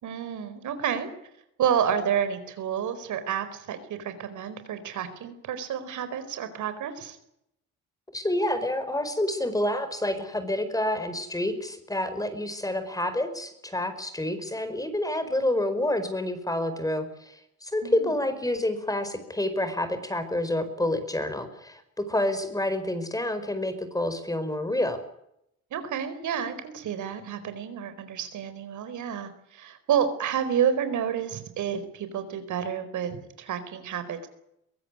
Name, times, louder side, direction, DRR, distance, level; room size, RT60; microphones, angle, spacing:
voice 1, 0.0-1.1 1.6-7.2 17.8-18.1 25.7-34.3, right 8 dB, 75° right, 10 dB, 4.6 m, -30 dB
voice 2, 8.1-25.0, left 1 dB, 10° left, 10 dB, 4.9 m, -28 dB
23.0 x 16.5 x 9.8 m, 0.78 s
cardioid pair, 90°, 30 cm